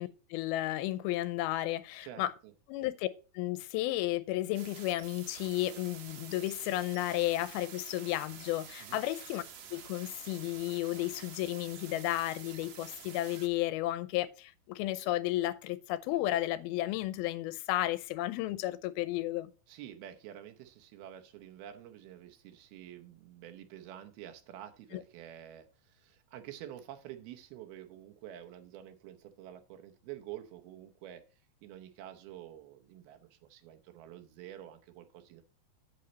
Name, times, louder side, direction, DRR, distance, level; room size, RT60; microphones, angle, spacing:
voice 1, 0.0-2.3 2.7-3.1 3.3-9.4 9.7-19.5 24.9-25.0, left 15 dB, 90° left, 2.5 m, -33 dB
voice 2, 2.0-2.5 8.8-9.0 19.7-31.2 31.6-35.4, right 11 dB, 85° right, 2.8 m, -48 dB
sound 1, 4.5-13.5, right 8 dB, 65° right, 1.9 m, -49 dB
8.3 x 7.8 x 4.0 m
omnidirectional pair, 4.3 m